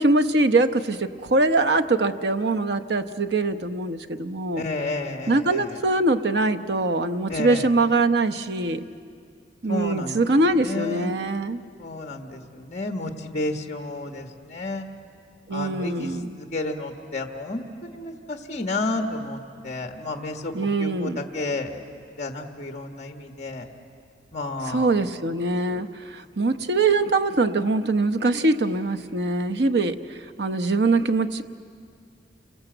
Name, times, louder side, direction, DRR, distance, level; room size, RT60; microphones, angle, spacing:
voice 1, 0.0-4.6 5.3-8.8 9.6-11.6 15.5-16.4 20.5-21.2 24.7-31.4, right 2 dB, 70° right, 8 dB, 0.9 m, -23 dB
voice 2, 4.6-5.8 7.3-7.7 9.7-10.2 10.6-11.1 11.8-14.9 15.5-20.5 20.8-21.8 22.2-23.7 24.3-25.0 25.7-25.8, left 2 dB, 40° left, 5 dB, 1.4 m, -31 dB
29.0 x 22.0 x 7.9 m, 2.3 s
head